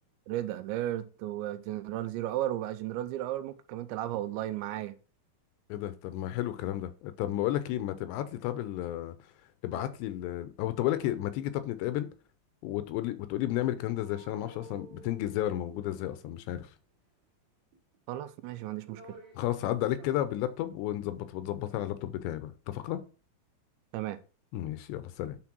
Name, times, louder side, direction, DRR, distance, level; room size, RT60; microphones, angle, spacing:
voice 1, 0.3-5.0 18.1-19.2 23.9-24.2, right 13 dB, 85° right, 2.9 m, -34 dB
voice 2, 5.7-9.1 9.6-12.1 12.6-16.7 19.4-23.0 24.5-25.4, left 13 dB, 80° left, 2.8 m, -32 dB
sound 1, 14.0-16.5 17.7-18.3 18.6-19.5 19.9-20.4 20.7-20.8, right 3 dB, 45° right, 2.7 m, -53 dB
9.6 x 4.4 x 6.1 m
omnidirectional pair, 5.2 m